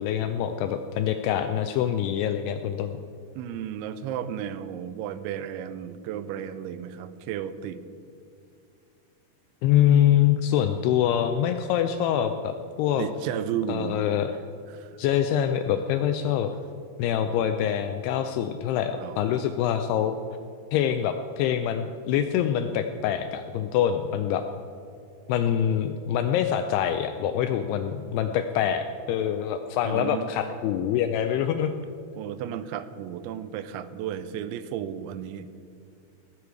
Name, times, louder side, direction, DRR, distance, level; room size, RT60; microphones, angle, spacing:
voice 1, 0.0-3.0 9.6-13.1 13.7-14.3 15.0-16.5 17.0-20.2 20.7-24.4 25.3-31.7, left 9 dB, 85° left, 8 dB, 2.3 m, -25 dB
voice 2, 3.4-7.8 13.0-14.0 14.7-14.9 19.0-19.4 29.8-30.3 32.2-35.5, right 9 dB, 90° right, 13 dB, 3.0 m, -33 dB
18.5 x 8.5 x 4.7 m, 2.5 s
omnidirectional pair, 5.2 m